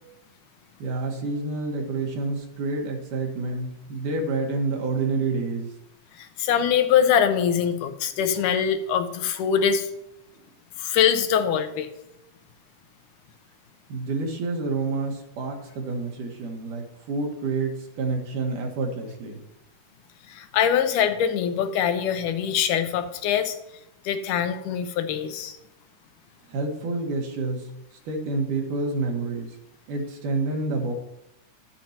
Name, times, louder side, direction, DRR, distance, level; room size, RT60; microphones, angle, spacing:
voice 1, 0.8-5.7 13.9-19.4 26.5-27.7 28.1-29.6 29.9-30.9, right 3 dB, 85° right, 1 dB, 3.0 m, -28 dB
voice 2, 6.2-9.9 10.8-11.9 20.3-23.6 24.1-25.6, left 8 dB, 90° left, 8 dB, 2.3 m, -23 dB
11.5 x 8.8 x 2.9 m, 0.84 s
omnidirectional pair, 3.6 m